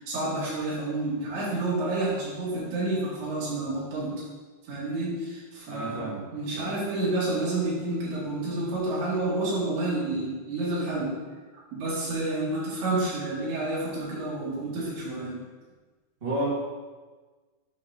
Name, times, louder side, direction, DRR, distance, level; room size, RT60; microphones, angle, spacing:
voice 1, 0.0-4.2 4.6-11.2 11.7-15.4, right 2 dB, 75° right, -8 dB, 4.4 m, -29 dB
voice 2, 5.7-6.2 6.5-6.7 16.2-16.5, right 1 dB, 30° right, -7 dB, 1.0 m, -31 dB
9.4 x 3.3 x 5.7 m, 1.3 s
omnidirectional pair, 4.6 m